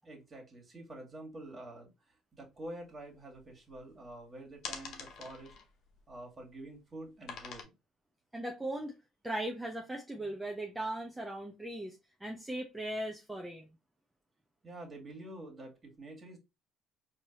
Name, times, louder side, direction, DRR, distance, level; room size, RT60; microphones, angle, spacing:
voice 1, 0.0-1.9 2.4-5.5 6.1-7.8 14.6-16.4, right 1 dB, 35° right, 2.0 m, -47 dB
sound 1, 2.6-2.7 3.0-4.1 4.5-6.6 7.2-7.6, left 6 dB, 60° left, 0.9 m, -45 dB
voice 2, 8.3-9.0 9.2-13.7, right 1 dB, 10° right, 0.8 m, -38 dB
4.5 x 3.0 x 2.8 m
hypercardioid pair, 65°, 0 cm